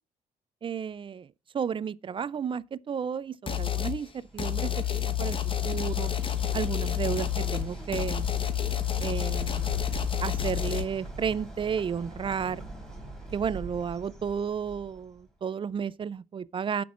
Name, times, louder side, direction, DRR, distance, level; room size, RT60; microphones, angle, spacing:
voice 1, 0.6-1.3 1.5-5.4 5.6-6.1 6.5-8.3 9.0-9.7 10.2-12.7 13.3-16.8, right 7 dB, 35° right, 0.4 m, -32 dB
sound 1, 3.5-4.0 4.4-10.8, left 11 dB, 35° left, 1.0 m, -29 dB
Bird, 3.8-15.3, right 2 dB, 5° left, 3.8 m, -41 dB
18.0 x 6.0 x 2.4 m
cardioid pair, 105°, 15 cm